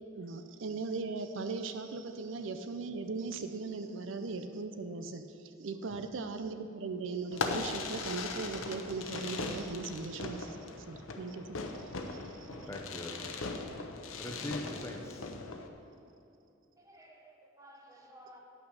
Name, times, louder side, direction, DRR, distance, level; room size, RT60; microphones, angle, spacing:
voice 1, 0.2-10.6 10.9-12.7, right 4 dB, 70° right, 8 dB, 0.5 m, -39 dB
Fireworks, 7.3-15.7, left 3 dB, 85° left, 0.8 m, -39 dB
voice 2, 12.7-13.7 14.2-15.3, left 1 dB, 15° left, 2 dB, 0.7 m, -42 dB
voice 3, 16.8-18.4, right 1 dB, 15° right, 1 dB, 1.0 m, -56 dB
10.0 x 6.0 x 6.4 m, 2.6 s
head